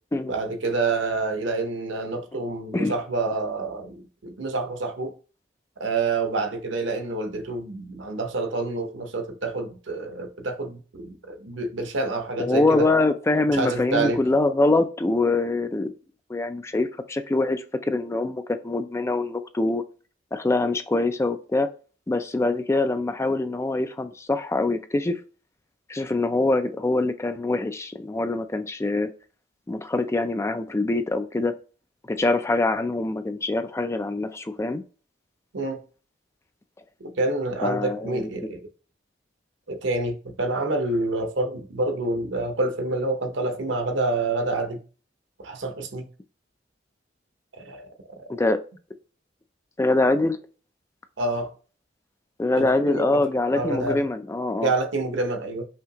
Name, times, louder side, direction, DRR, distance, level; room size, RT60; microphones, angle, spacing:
voice 1, 0.3-5.1 5.8-12.9 13.5-14.2 35.5-35.8 37.0-38.6 39.7-44.8 45.4-46.1 47.6-47.8 51.2-51.5 52.6-53.2 53.5-54.0 54.6-55.7, right 2 dB, 90° right, 0.8 m, -27 dB
voice 2, 12.4-15.9 16.3-19.8 20.3-21.7 22.1-25.2 25.9-29.1 29.7-31.6 32.1-34.8 37.6-38.3 48.3-48.6 49.8-50.4 52.4-54.7, left 2 dB, 15° left, 0.3 m, -24 dB
5.6 x 2.8 x 2.8 m
head